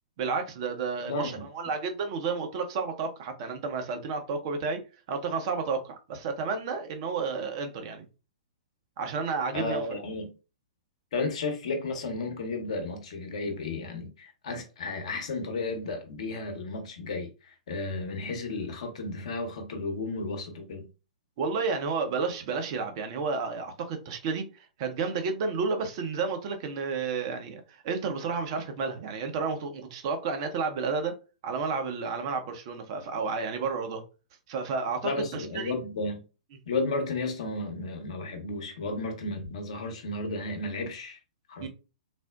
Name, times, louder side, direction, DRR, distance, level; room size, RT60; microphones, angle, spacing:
voice 1, 0.2-4.8 5.1-8.1 9.0-9.9 21.4-31.2 31.4-34.0 34.5-35.7 41.6-41.7, right 4 dB, 45° right, 0.8 m, -31 dB
voice 2, 1.1-1.4 9.5-10.3 11.1-20.9 35.0-36.2 36.7-41.2 41.5-41.7, left 3 dB, 55° left, 0.9 m, -33 dB
4.1 x 2.1 x 2.3 m
figure-of-eight pair, 110°, 4 cm